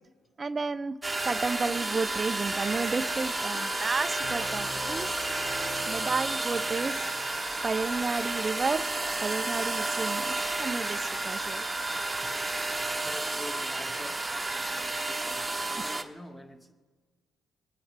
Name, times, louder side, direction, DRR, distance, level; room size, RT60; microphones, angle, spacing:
voice 1, 0.4-1.0 1.2-5.1 5.9-7.1 7.6-8.9 9.2-11.7 15.7-15.8, right 4 dB, 30° right, 12 dB, 0.5 m, -32 dB
sound 1, 1.0-16.0, right 2 dB, 15° right, 1.1 m, -32 dB
sound 2, 2.5-7.5, left 1 dB, 85° left, 4.9 m, -43 dB
Wind instrument woodwind instrument, 3.0-15.5, right 1 dB, 50° left, 2.8 m, -43 dB
voice 2, 12.7-16.7, left 1 dB, 15° left, 3 dB, 1.8 m, -46 dB
23.0 x 10.0 x 3.4 m, 1.4 s
cardioid pair, 90°, 0 cm